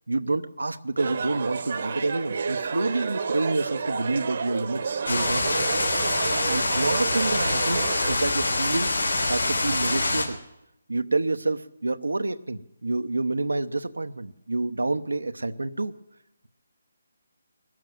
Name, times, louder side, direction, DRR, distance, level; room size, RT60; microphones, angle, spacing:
voice 1, 0.1-5.5 6.5-8.9 9.3-10.4 10.9-15.9, right 2 dB, 85° right, 8 dB, 0.9 m, -28 dB
sound 1, 1.0-8.2, right 5 dB, 55° right, 1.1 m, -30 dB
sound 2, 5.1-10.3, left 2 dB, 85° left, 3.5 m, -25 dB
20.5 x 7.6 x 9.2 m, 0.87 s
figure-of-eight pair, 150°, 0 cm